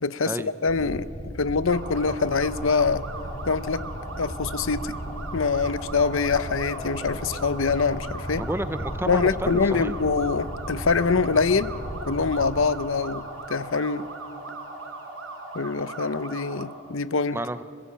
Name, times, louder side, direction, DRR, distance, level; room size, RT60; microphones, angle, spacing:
voice 1, 0.0-1.1 1.4-3.0 3.5-3.8 4.2-5.0 5.3-8.4 9.1-11.7 12.1-14.1 15.5-17.4, left 4 dB, 70° left, 15 dB, 0.7 m, -24 dB
sound 1, 0.7-12.7, equal, 35° left, 2.3 m, -36 dB
sound 2, 1.7-16.6, right 3 dB, 80° right, 4.4 m, -39 dB
voice 2, 8.4-10.0 17.3-17.6, right 1 dB, 10° right, 12 dB, 0.6 m, -31 dB
25.0 x 16.0 x 8.6 m, 2.4 s
head